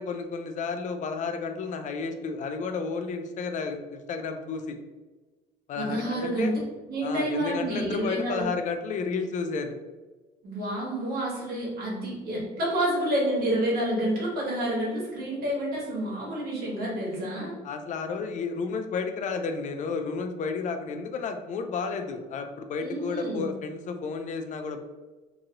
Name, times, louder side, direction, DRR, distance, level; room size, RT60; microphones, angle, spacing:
voice 1, 0.0-4.8 5.7-6.5 7.0-9.8 17.6-24.8, left 4 dB, 45° left, 6 dB, 0.4 m, -32 dB
voice 2, 5.7-6.6 6.9-8.5 10.4-17.5 22.8-23.4, right 1 dB, 65° right, -4 dB, 1.4 m, -29 dB
2.9 x 2.7 x 2.5 m, 1.2 s
cardioid pair, 110°, 17 cm